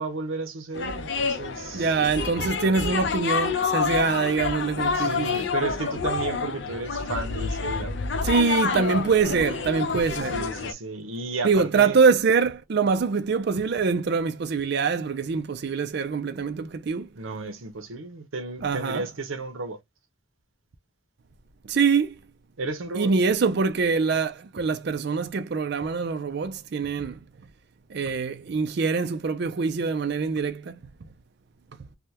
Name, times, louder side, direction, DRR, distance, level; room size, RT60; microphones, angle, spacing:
voice 1, 0.0-1.9 4.9-7.9 10.3-12.0 17.2-19.8 22.6-23.1, right 3 dB, 85° right, 0.8 m, -33 dB
sound 1, 0.7-10.7, left 5 dB, 60° left, 0.5 m, -28 dB
voice 2, 1.7-5.5 8.2-10.4 11.4-17.1 18.6-19.1 21.7-22.1 22.9-27.2 27.9-30.8, right 5 dB, 55° right, 0.4 m, -24 dB
3.4 x 2.2 x 2.8 m
head